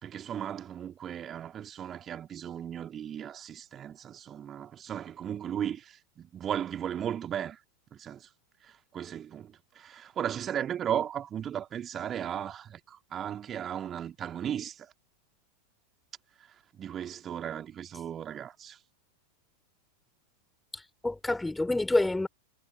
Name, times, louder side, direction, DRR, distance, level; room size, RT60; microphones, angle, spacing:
voice 1, 0.0-7.6 7.9-8.3 8.6-14.9 16.8-18.8, right 9 dB, 25° right, 3.1 m, -36 dB
voice 2, 20.7-22.3, left 2 dB, 5° left, 3.5 m, -28 dB
figure-of-eight pair, 90°, 0 cm